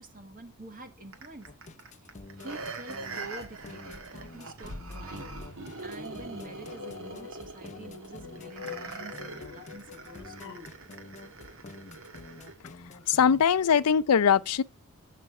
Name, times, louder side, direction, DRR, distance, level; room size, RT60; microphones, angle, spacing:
voice 1, 0.0-1.5 2.0-5.3 5.8-10.7, right 2 dB, 40° right, 1.5 m, -47 dB
sound 1, 1.1-12.6 13.0-13.1, right 3 dB, 65° right, 1.5 m, -43 dB
sound 2, 1.4-13.4, left 3 dB, 35° left, 0.8 m, -48 dB
sound 3, 5.1-10.7, left 7 dB, 60° left, 1.1 m, -47 dB
voice 2, 13.1-14.6, left 7 dB, 85° left, 0.5 m, -21 dB
8.4 x 5.9 x 5.3 m
head